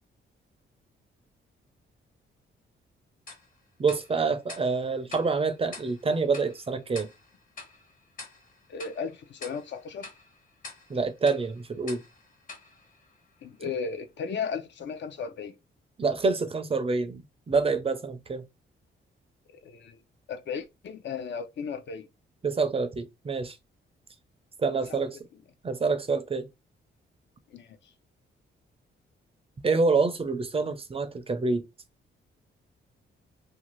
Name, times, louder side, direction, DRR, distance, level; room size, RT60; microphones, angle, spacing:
Tick-tock, 3.3-13.7, left 3 dB, 40° left, 1.0 m, -48 dB
voice 1, 3.8-7.1 10.9-12.0 13.6-13.7 16.0-18.4 22.4-23.6 24.6-25.2 25.6-26.5 29.6-31.6, right 4 dB, 30° right, 0.5 m, -27 dB
voice 2, 8.7-10.1 13.4-15.5 19.6-20.0 20.3-22.1 24.9-25.0 27.5-27.9, left 6 dB, 65° left, 0.6 m, -35 dB
2.6 x 2.3 x 3.0 m
cardioid pair, 110°, 20 cm